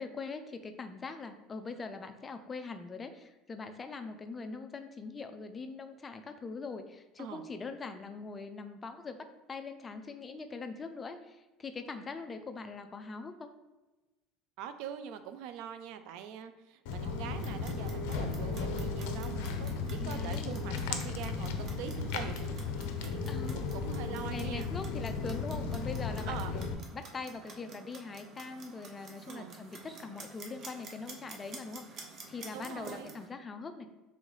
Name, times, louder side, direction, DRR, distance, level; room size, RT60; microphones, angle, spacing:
voice 1, 0.0-9.2 9.5-13.5 20.0-20.6 23.3-23.6 24.2-33.9, left 4 dB, 20° left, 7 dB, 0.3 m, -42 dB
voice 2, 14.6-24.7 26.3-26.6 29.3-29.6 32.5-33.2, right 9 dB, 70° right, 10 dB, 0.3 m, -44 dB
Walk footsteps, 16.9-26.7, left 4 dB, 85° left, 0.5 m, -35 dB
Clock, 17.2-33.3, right 3 dB, 40° right, 0.7 m, -51 dB
3.6 x 3.2 x 3.9 m, 1.1 s
cardioid pair, 150°, 0 cm